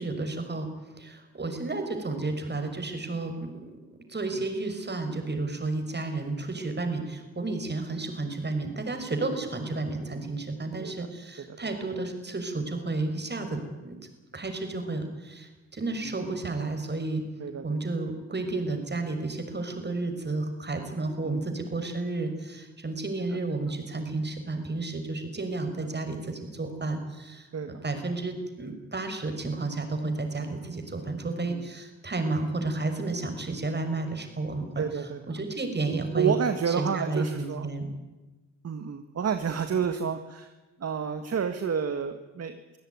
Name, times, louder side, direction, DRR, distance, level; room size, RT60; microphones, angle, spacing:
voice 1, 0.0-3.8 4.1-14.0 14.3-17.2 17.6-36.4 36.7-37.9, right 3 dB, 35° right, 6 dB, 6.1 m, -32 dB
voice 2, 10.8-11.1 11.5-11.6 16.0-16.3 17.4-17.8 21.3-21.4 25.8-25.9 27.5-27.8 31.5-31.6 34.8-35.4 36.1-37.7 38.6-40.5 40.8-42.8, right 7 dB, 50° right, 8 dB, 1.8 m, -30 dB
25.0 x 16.0 x 9.7 m, 1.2 s
supercardioid pair, 60°, 31 cm